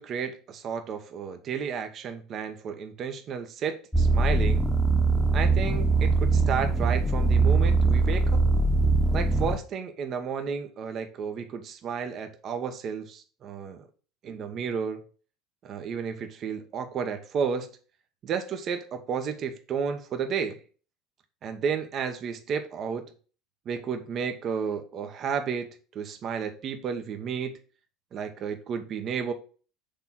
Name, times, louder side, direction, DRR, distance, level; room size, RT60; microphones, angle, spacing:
voice 1, 0.0-4.7 5.3-8.4 9.1-13.9 14.2-15.0 15.6-17.7 18.2-20.6 21.4-23.1 23.7-25.7 25.9-27.6 28.1-29.3, right 6 dB, 45° right, 1.1 m, -32 dB
sound 1, 3.9-9.6, right 3 dB, 5° left, 1.1 m, -22 dB
6.7 x 3.6 x 5.9 m
hypercardioid pair, 85°, 0 cm